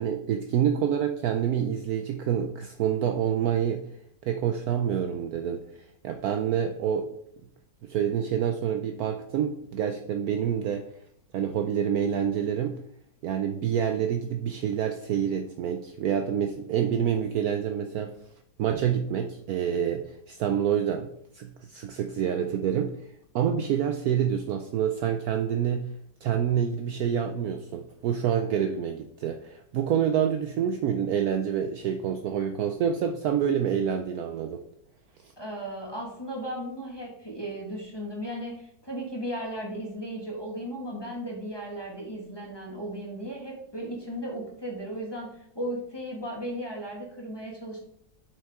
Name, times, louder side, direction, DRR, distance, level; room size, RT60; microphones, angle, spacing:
voice 1, 0.0-3.8 4.2-5.6 6.0-7.1 7.8-10.8 11.3-12.8 13.2-18.1 18.6-21.1 21.3-23.1 23.3-25.9 26.2-34.6, right 8 dB, 70° right, 6 dB, 0.9 m, -27 dB
voice 2, 35.4-47.8, right 1 dB, 15° left, -2 dB, 1.6 m, -36 dB
7.4 x 6.1 x 3.6 m, 0.71 s
omnidirectional pair, 1.9 m